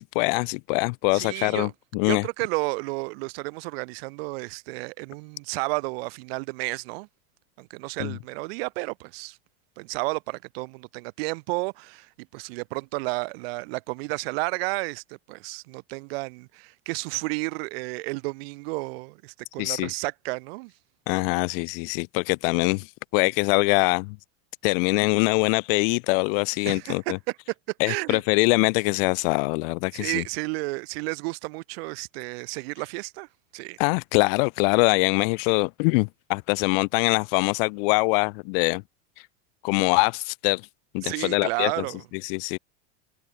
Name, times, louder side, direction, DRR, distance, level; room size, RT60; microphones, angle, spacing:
voice 1, 0.0-2.2 8.0-8.1 19.6-19.9 21.1-24.2 24.6-27.2 27.8-30.2 33.8-38.8 39.2-39.3 39.6-40.6 40.9-41.8 42.2-42.6, left 33 dB, 60° left, 0.6 m, -23 dB
voice 2, 1.1-1.7 2.0-7.1 7.6-9.4 9.8-20.7 26.7-26.9 27.9-28.2 29.9-33.3 33.5-33.8 41.0-42.0, right 26 dB, 70° right, 1.3 m, -32 dB
supercardioid pair, 140°, 32 cm